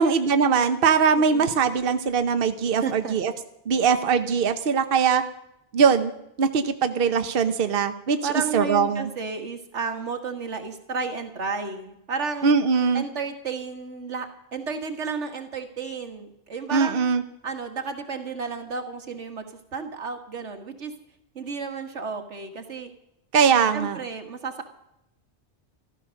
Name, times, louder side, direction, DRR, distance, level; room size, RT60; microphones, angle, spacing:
voice 1, 0.0-3.3 3.7-5.2 5.7-6.1 6.4-8.2 8.5-9.1 12.4-13.0 16.7-17.2 23.3-24.0, right 6 dB, 55° right, 9 dB, 1.0 m, -21 dB
voice 2, 1.2-1.5 2.8-3.2 8.2-12.5 12.9-17.1 17.4-20.9 21.4-22.9 23.7-24.7, right 5 dB, 85° right, 6 dB, 2.0 m, -32 dB
14.0 x 13.5 x 6.4 m, 0.83 s
omnidirectional pair, 1.2 m